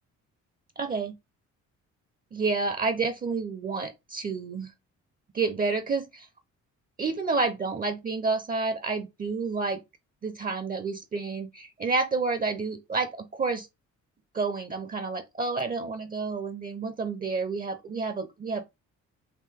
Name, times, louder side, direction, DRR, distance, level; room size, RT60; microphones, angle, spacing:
voice 1, 0.8-1.1 2.3-4.7 5.3-6.3 7.0-9.8 10.2-13.7 14.3-18.6, right 4 dB, 30° right, 0.5 m, -29 dB
3.7 x 2.6 x 3.4 m
cardioid pair, 90°, 30 cm